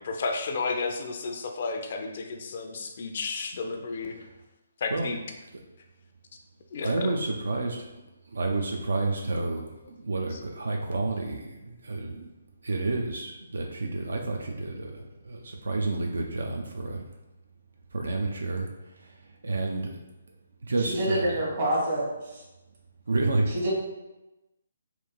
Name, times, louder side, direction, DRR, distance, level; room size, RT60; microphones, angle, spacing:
voice 1, 0.0-4.1 4.8-5.2 6.7-7.2 10.3-10.4, left 4 dB, 50° left, 4 dB, 0.3 m, -32 dB
voice 2, 6.8-7.9 8.3-12.3 12.6-17.1 17.9-20.0 20.6-21.3 23.1-23.7, right 2 dB, 75° right, 2 dB, 0.3 m, -30 dB
voice 3, 20.9-22.4 23.5-23.7, right 1 dB, 45° right, -4 dB, 1.2 m, -27 dB
2.9 x 2.4 x 2.2 m, 1.0 s
figure-of-eight pair, 145°, 0 cm